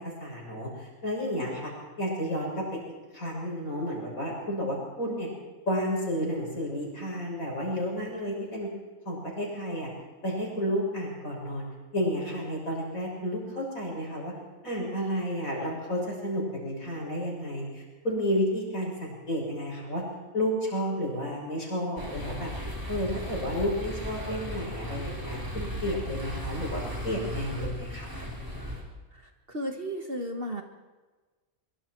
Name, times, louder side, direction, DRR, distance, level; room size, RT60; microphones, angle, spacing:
voice 1, 0.2-1.7 2.0-2.8 3.1-5.3 5.7-8.7 9.1-9.9 10.2-11.6 11.9-14.3 14.6-20.0 20.3-22.5 22.9-28.1, equal, 70° left, -2 dB, 7.3 m, -31 dB
sound 1, 22.0-28.8, equal, 15° right, 3.9 m, -36 dB
voice 2, 29.5-30.6, equal, 40° right, 4 dB, 1.8 m, -34 dB
24.0 x 23.5 x 4.6 m, 1.3 s
omnidirectional pair, 1.5 m